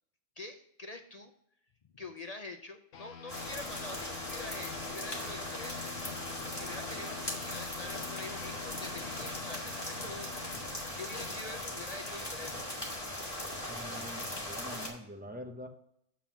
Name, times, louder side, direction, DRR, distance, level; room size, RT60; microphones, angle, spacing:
voice 1, 0.4-1.3 1.9-5.9 6.5-10.4 10.9-12.7, left 2 dB, 50° left, 5 dB, 0.5 m, -45 dB
sound 1, 2.9-12.7, left 8 dB, 70° left, 1.2 m, -48 dB
sound 2, 3.3-14.9, left 1 dB, 20° left, 2.0 m, -39 dB
voice 2, 13.6-15.7, equal, 10° right, 4 dB, 0.7 m, -45 dB
7.5 x 5.6 x 5.9 m, 0.73 s
omnidirectional pair, 1.4 m